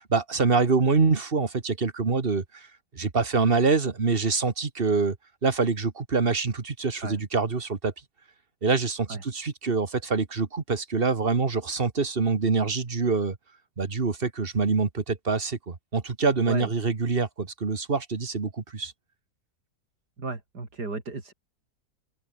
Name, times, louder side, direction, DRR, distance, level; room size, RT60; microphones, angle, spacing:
voice 1, 0.0-2.7 2.9-5.2 5.4-7.9 8.6-13.4 13.8-18.9, right 4 dB, 35° right, 1.8 m, -25 dB
voice 2, 20.2-21.3, right 3 dB, 80° right, 4.6 m, -34 dB
open air
omnidirectional pair, 1.7 m